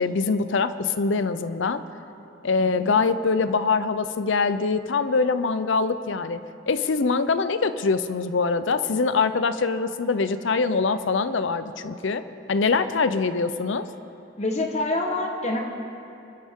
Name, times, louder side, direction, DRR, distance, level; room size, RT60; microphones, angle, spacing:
voice 1, 0.0-1.8 2.4-6.4 6.7-12.2 12.5-13.9, left 4 dB, 70° left, 12 dB, 0.6 m, -23 dB
voice 2, 2.6-2.9 14.4-15.6, left 2 dB, 35° left, 2 dB, 1.3 m, -26 dB
25.5 x 12.0 x 3.7 m, 2.8 s
head